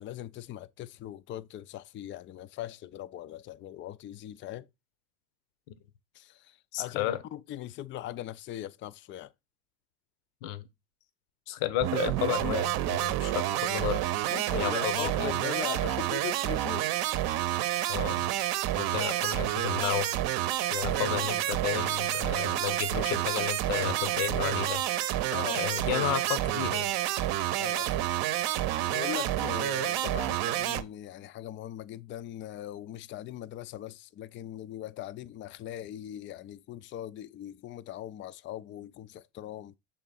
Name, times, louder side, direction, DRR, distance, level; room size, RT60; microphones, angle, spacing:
voice 1, 0.0-4.7 6.1-9.3 14.3-16.9 17.6-17.8 20.9-21.3 25.3-25.6 27.6-28.1 28.9-39.7, left 12 dB, 30° left, 0.4 m, -40 dB
voice 2, 6.7-7.2 10.4-10.7 11.5-14.0 14.6-15.3 17.9-18.2 18.7-20.1 20.7-24.8 25.5-26.9, left 13 dB, 65° left, 0.8 m, -32 dB
sound 1, 11.8-30.8, right 13 dB, 50° right, 0.8 m, -29 dB
6.8 x 3.7 x 4.1 m
hypercardioid pair, 65°, 45 cm